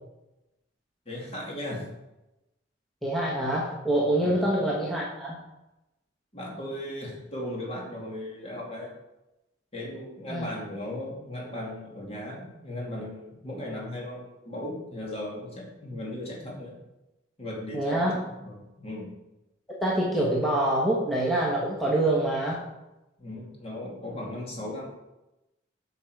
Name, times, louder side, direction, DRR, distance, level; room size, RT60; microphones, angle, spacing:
voice 1, 1.1-1.8 4.2-4.5 6.3-8.9 9.7-16.7 17.4-18.0 18.4-19.1 23.2-24.9, left 1 dB, 35° left, -2 dB, 2.4 m, -37 dB
voice 2, 3.0-5.4 10.3-10.5 17.7-18.2 19.8-22.6, right 1 dB, ahead, -5 dB, 1.3 m, -25 dB
8.4 x 5.8 x 4.8 m, 0.96 s
head